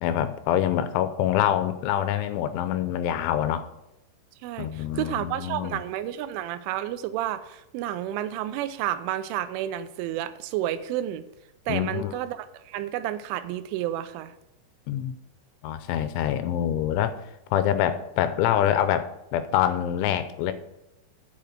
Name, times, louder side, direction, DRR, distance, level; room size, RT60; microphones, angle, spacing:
voice 1, 0.0-3.7 4.6-5.8 11.7-12.1 14.9-15.2 15.6-17.1 17.5-20.5, left 10 dB, 85° left, 11 dB, 3.0 m, -25 dB
voice 2, 4.4-11.2 11.7-14.3, right 12 dB, 90° right, 13 dB, 3.1 m, -31 dB
8.6 x 6.9 x 6.0 m, 0.88 s
omnidirectional pair, 5.5 m